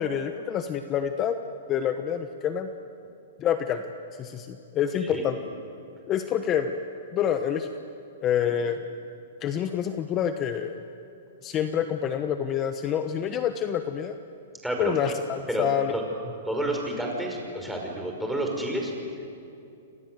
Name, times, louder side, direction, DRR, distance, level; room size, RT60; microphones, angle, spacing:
voice 1, 0.0-1.4 1.7-2.7 3.4-3.8 4.2-5.4 6.1-6.7 7.1-7.7 8.2-8.8 9.4-10.8 11.4-14.2 14.8-15.9, left 9 dB, 25° left, 8 dB, 1.2 m, -27 dB
voice 2, 14.6-14.9 15.5-15.7 15.9-16.0 16.5-18.9, right 1 dB, ahead, 0 dB, 5.6 m, -29 dB
29.5 x 25.5 x 7.9 m, 2.6 s
hypercardioid pair, 140°, 0 cm